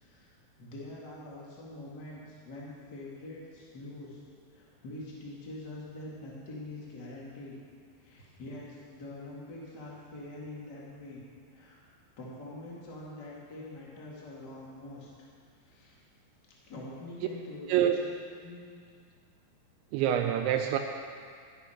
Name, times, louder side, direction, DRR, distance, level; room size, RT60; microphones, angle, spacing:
voice 1, 0.0-4.2 4.5-7.5 8.0-11.2 11.5-11.8 12.2-15.3 15.6-16.0 16.6-17.9 18.4-18.7, left 2 dB, 55° left, -5 dB, 1.1 m, -45 dB
voice 2, 19.9-20.8, right 10 dB, 85° right, 5 dB, 2.8 m, -26 dB
12.5 x 10.0 x 5.7 m, 2.1 s
omnidirectional pair, 5.4 m